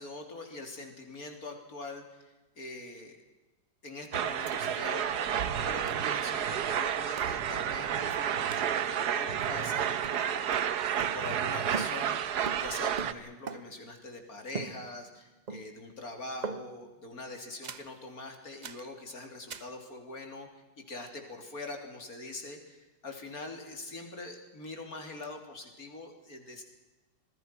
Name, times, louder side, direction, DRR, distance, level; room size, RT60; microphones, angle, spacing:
voice 1, 0.0-3.2 3.8-10.7 11.1-26.6, left 2 dB, 55° left, 4 dB, 3.8 m, -43 dB
sound 1, 4.1-13.1, right 9 dB, 70° right, 1.5 m, -31 dB
sound 2, 4.5-4.6 4.8-4.9 5.9-6.1 7.2-7.4 8.5-8.8 9.4-9.8 10.0-11.5 11.7-13.9 14.5-15.2 15.5-15.9 16.4-16.9 17.6-18.0 18.6-18.9 19.5-19.8, right 5 dB, 50° right, 0.5 m, -42 dB
26.5 x 21.5 x 6.0 m, 1.1 s
omnidirectional pair, 1.9 m